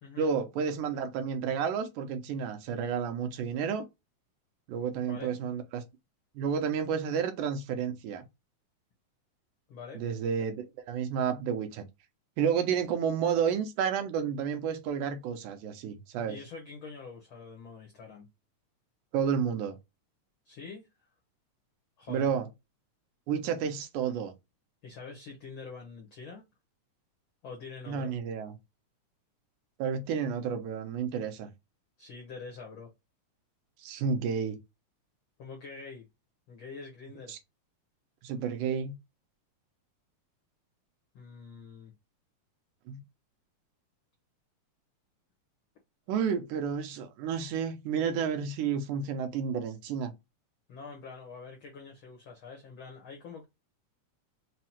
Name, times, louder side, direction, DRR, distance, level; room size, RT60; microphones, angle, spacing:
voice 1, 0.2-3.9 4.7-5.8 6.4-8.2 9.9-11.8 12.4-16.4 19.1-19.8 22.1-22.5 23.3-24.3 27.9-28.6 29.8-31.5 33.8-34.6 37.3-37.4 38.2-39.0 42.9-43.0 46.1-50.1, right 7 dB, 80° right, 2.2 m, -31 dB
voice 2, 5.0-5.4 9.7-10.0 16.2-18.3 20.4-20.9 22.0-22.3 24.8-26.4 27.4-28.1 32.0-32.9 35.4-36.0 36.5-37.3 41.1-41.9 50.7-53.4, left 4 dB, 75° left, 1.1 m, -45 dB
5.5 x 2.1 x 2.8 m
omnidirectional pair, 3.6 m